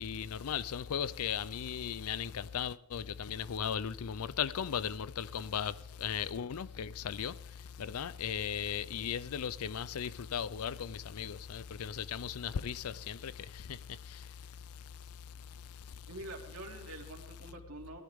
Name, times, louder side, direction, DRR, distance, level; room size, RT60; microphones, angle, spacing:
voice 1, 0.0-16.1, left 8 dB, 85° left, 0.5 m, -37 dB
voice 2, 16.1-18.0, right 2 dB, 80° right, 2.6 m, -46 dB
18.0 x 13.5 x 3.6 m
head